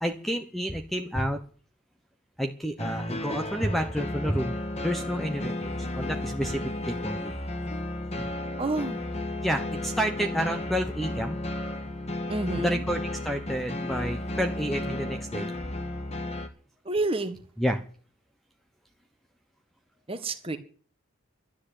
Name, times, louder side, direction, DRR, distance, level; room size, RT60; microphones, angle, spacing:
voice 1, 0.0-1.4 2.4-4.5 4.8-7.3 8.1-8.3 9.4-11.4 12.5-15.5 17.6-17.8, equal, ahead, 1.0 m, -30 dB
sound 1, 2.8-16.5, left 1 dB, 30° left, 1.7 m, -33 dB
voice 2, 8.6-9.0 12.3-12.8 16.8-17.3 20.1-20.6, right 2 dB, 25° right, 1.6 m, -29 dB
13.0 x 10.0 x 8.3 m
head